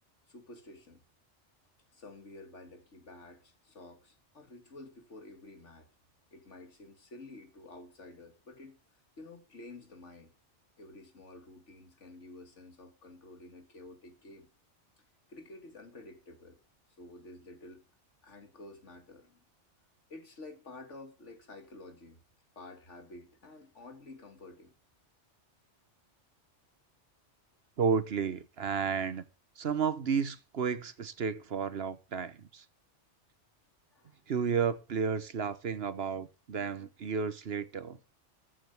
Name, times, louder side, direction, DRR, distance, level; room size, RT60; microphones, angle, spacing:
voice 1, 0.3-1.0 1.9-5.9 6.3-8.8 9.2-10.3 10.8-14.5 15.0-16.6 17.0-17.8 18.2-19.4 20.1-22.2 22.6-24.7 33.9-34.2, left 2 dB, 80° left, 2.5 m, -51 dB
voice 2, 27.8-29.2 29.6-32.6 34.3-38.0, right 6 dB, 60° right, 1.2 m, -32 dB
14.0 x 5.1 x 7.9 m
omnidirectional pair, 1.2 m